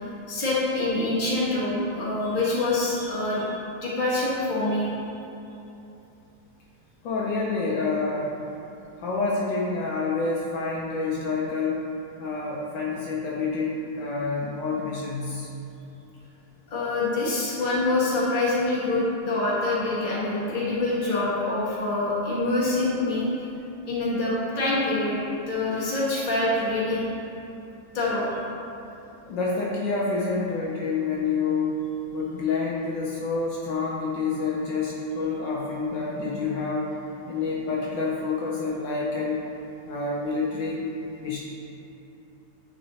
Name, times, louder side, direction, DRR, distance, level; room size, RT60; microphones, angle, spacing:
voice 1, 0.0-4.9 16.7-23.3 23.9-27.0 27.9-28.3, left 2 dB, 30° left, -8 dB, 1.3 m, -25 dB
voice 2, 7.0-8.3 9.0-11.8 12.2-15.5 29.3-31.8 32.1-36.9 37.3-39.4 39.8-40.8 41.2-41.4, left 4 dB, 75° left, -4 dB, 1.3 m, -28 dB
9.2 x 3.9 x 2.8 m, 2.9 s
omnidirectional pair, 2.2 m